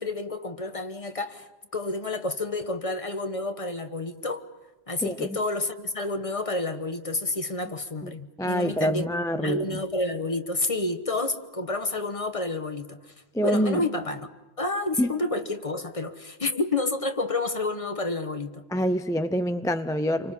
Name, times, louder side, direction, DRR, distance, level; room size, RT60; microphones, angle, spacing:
voice 1, 0.0-4.4 4.9-9.1 9.3-13.1 13.4-14.3 14.6-18.6, left 2 dB, 30° left, 1.2 m, -29 dB
voice 2, 5.0-5.4 8.0-8.1 8.4-9.8 13.3-13.8 15.0-15.1 18.7-20.3, equal, 5° left, 0.5 m, -26 dB
29.0 x 24.5 x 5.6 m
omnidirectional pair, 1.1 m